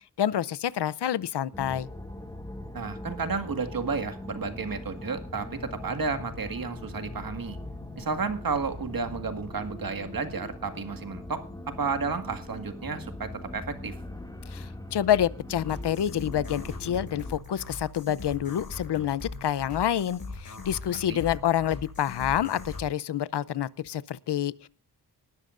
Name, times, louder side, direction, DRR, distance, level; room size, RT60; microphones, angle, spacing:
voice 1, 0.2-1.9 14.5-24.7, left 10 dB, 80° left, 0.7 m, -28 dB
sound 1, 1.5-17.4, left 1 dB, 10° left, 2.2 m, -41 dB
voice 2, 2.7-7.6 8.0-11.4 11.8-13.9 20.9-21.2, right 4 dB, 55° right, 1.9 m, -32 dB
sound 2, 15.6-22.9, left 3 dB, 60° left, 5.3 m, -40 dB
19.5 x 11.5 x 2.5 m
wide cardioid pair, 120°, 40 cm